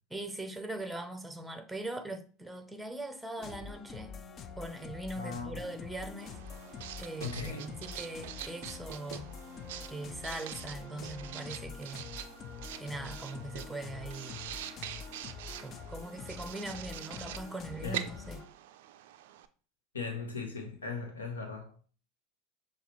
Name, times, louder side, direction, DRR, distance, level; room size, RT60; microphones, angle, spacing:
voice 1, 0.1-4.1 4.6-6.4 7.0-9.3 9.9-12.1 12.8-14.4 15.6-18.4, right 2 dB, 5° right, 0.7 m, -41 dB
sound 1, 3.4-18.5, left 6 dB, 40° left, 0.5 m, -46 dB
voice 2, 5.1-5.7 7.2-7.7 17.8-18.0 19.9-21.7, left 5 dB, 85° left, 0.9 m, -38 dB
Writing, 6.2-19.5, right 12 dB, 65° right, 0.3 m, -45 dB
6.4 x 2.4 x 3.0 m
hypercardioid pair, 85°, 0 cm